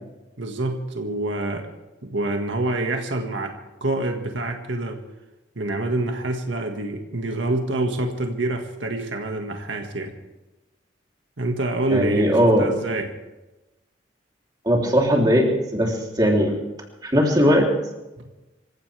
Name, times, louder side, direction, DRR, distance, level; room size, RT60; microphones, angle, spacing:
voice 1, 0.4-1.7 2.0-3.5 3.8-5.0 5.6-10.1 11.4-13.1, right 2 dB, 85° right, 3 dB, 1.8 m, -26 dB
voice 2, 11.9-12.7 14.6-16.5 17.0-17.7, equal, 20° right, -1 dB, 3.4 m, -19 dB
26.5 x 15.5 x 3.5 m, 1.0 s
head